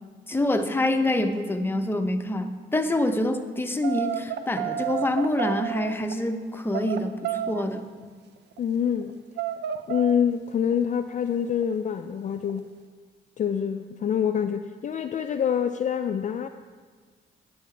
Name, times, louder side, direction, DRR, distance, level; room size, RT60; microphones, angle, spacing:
voice 1, 0.3-7.8, left 1 dB, 10° left, 6 dB, 0.7 m, -26 dB
sound 1, 3.8-6.2 6.7-7.6 8.0-8.1 8.4-9.1 9.4-10.2 10.6-10.8 11.4-11.7 12.3-12.6, right 10 dB, 60° right, 0.7 m, -31 dB
voice 2, 8.6-9.2 9.9-12.7 13.4-16.5, left 8 dB, 40° left, 8 dB, 0.4 m, -26 dB
10.5 x 8.5 x 3.3 m, 1.5 s
cardioid pair, 90°, 20 cm